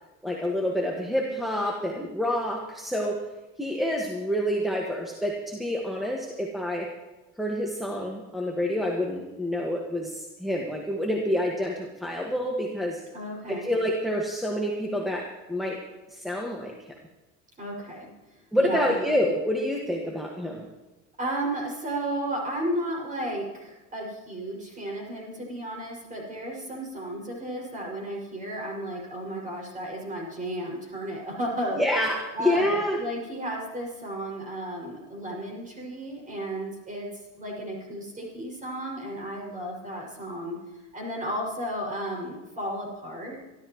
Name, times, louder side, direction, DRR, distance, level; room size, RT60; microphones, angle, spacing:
voice 1, 0.2-3.2 3.6-6.9 7.4-13.0 13.5-15.8 16.1-16.7 18.5-20.7 31.7-33.0, left 1 dB, ahead, -2 dB, 1.6 m, -28 dB
voice 2, 13.1-13.7 17.6-18.1 18.6-18.9 21.2-31.8 32.4-37.1 37.4-40.6 40.9-43.4, right 1 dB, 25° right, -2 dB, 6.0 m, -33 dB
27.0 x 12.5 x 3.1 m, 1.1 s
cardioid pair, 120°, 33 cm